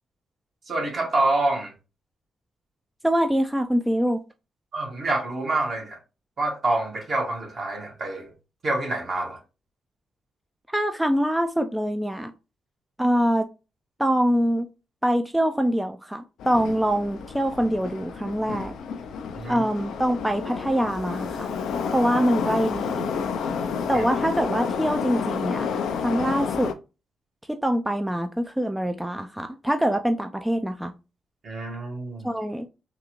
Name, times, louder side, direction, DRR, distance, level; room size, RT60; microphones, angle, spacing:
voice 1, 0.7-1.7 4.7-6.0 6.4-8.3 8.6-9.4 19.3-19.6 23.9-24.0 31.4-32.3, right 2 dB, 55° right, 1.5 m, -27 dB
voice 2, 3.0-4.2 10.7-12.3 13.0-13.5 14.0-14.7 15.0-18.7 19.5-21.5 21.9-23.1 23.9-25.7 26.0-26.7 27.5-30.9 32.2-32.7, equal, 5° right, 0.4 m, -24 dB
Subway metro underground, 16.4-26.7, left 6 dB, 80° left, 0.4 m, -30 dB
3.7 x 2.4 x 3.0 m
supercardioid pair, 50°, 0 cm